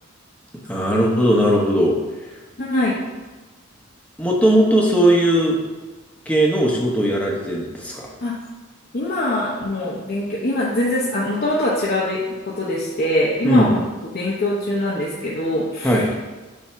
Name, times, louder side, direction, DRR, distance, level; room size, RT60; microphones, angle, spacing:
voice 1, 0.7-2.0 4.2-5.6 6.3-8.1 13.4-13.8 15.8-16.1, right 1 dB, 5° left, -3 dB, 0.9 m, -18 dB
voice 2, 2.6-3.0 8.2-8.3 8.9-13.8 14.1-16.0, left 1 dB, 50° left, -6 dB, 0.8 m, -23 dB
7.3 x 2.8 x 5.6 m, 1.2 s
head